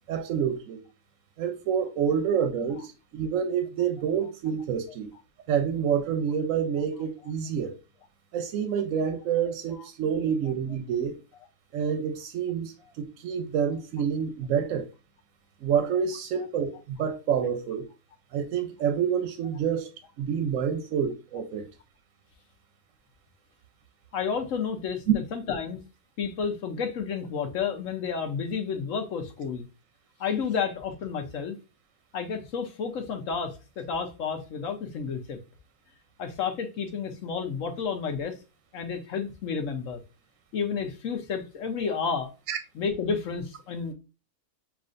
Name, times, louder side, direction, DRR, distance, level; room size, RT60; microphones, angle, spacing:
voice 1, 0.1-0.8 1.4-5.1 5.5-7.8 8.3-11.2 11.7-14.9 15.6-17.9 18.3-19.9 20.2-21.7 42.5-42.6, right 7 dB, 65° right, 0.9 m, -28 dB
voice 2, 24.1-25.0 25.3-25.8 26.2-29.7 30.2-31.6 32.1-35.4 36.2-38.4 38.7-40.0 40.5-42.3 42.8-43.9, left 6 dB, 65° left, 1.1 m, -31 dB
7.2 x 2.4 x 2.5 m
omnidirectional pair, 1.6 m